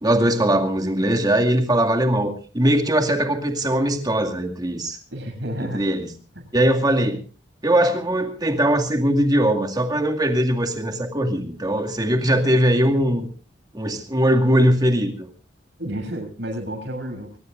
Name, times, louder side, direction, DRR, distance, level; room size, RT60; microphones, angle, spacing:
voice 1, 0.0-5.0 5.6-6.1 6.5-7.2 7.6-13.3 13.7-15.3, right 1 dB, 20° right, 3 dB, 2.2 m, -20 dB
voice 2, 5.1-5.8 6.4-6.5 15.8-17.4, right 1 dB, 70° right, 4 dB, 7.3 m, -31 dB
23.5 x 19.5 x 2.5 m, 0.36 s
head